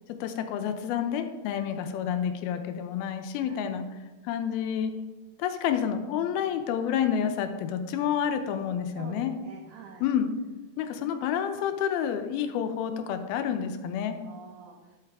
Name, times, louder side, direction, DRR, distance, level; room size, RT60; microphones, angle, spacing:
voice 1, 0.2-3.8 4.2-4.9 5.4-9.3 10.0-10.3 10.8-14.2, left 8 dB, 90° left, 7 dB, 2.7 m, -29 dB
voice 2, 8.9-10.1 14.2-15.0, right 6 dB, 70° right, 2 dB, 2.0 m, -47 dB
12.5 x 8.1 x 3.6 m, 1.2 s
omnidirectional pair, 4.3 m